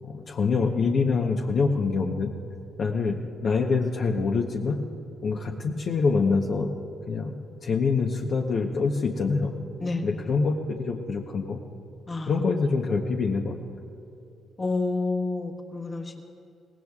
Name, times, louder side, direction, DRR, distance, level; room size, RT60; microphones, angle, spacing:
voice 1, 0.0-2.3 2.8-4.8 5.2-6.7 7.1-7.3 7.6-9.5 10.0-11.6 12.3-13.6, left 4 dB, 55° left, 1 dB, 0.9 m, -25 dB
voice 2, 14.6-16.3, left 3 dB, 30° left, 2 dB, 1.3 m, -29 dB
22.5 x 18.0 x 2.4 m, 2.6 s
cardioid pair, 90°, 0 cm